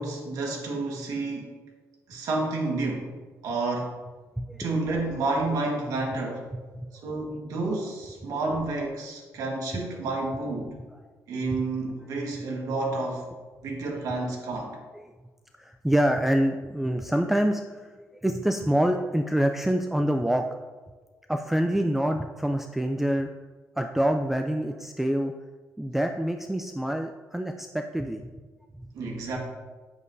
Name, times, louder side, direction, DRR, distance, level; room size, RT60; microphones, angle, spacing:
voice 1, 0.0-1.5 2.1-3.1 3.4-3.9 4.6-6.5 7.0-10.8 11.3-13.2 13.6-14.8 28.9-29.4, right 2 dB, 80° right, 0 dB, 1.5 m, -30 dB
voice 2, 4.4-4.7 6.5-6.9 11.5-11.6 15.6-20.5 21.3-23.3 23.8-25.3 25.8-28.2 28.8-28.9, right 1 dB, 5° right, 5 dB, 0.3 m, -26 dB
8.4 x 7.2 x 2.6 m, 1.3 s
cardioid pair, 130°, 6 cm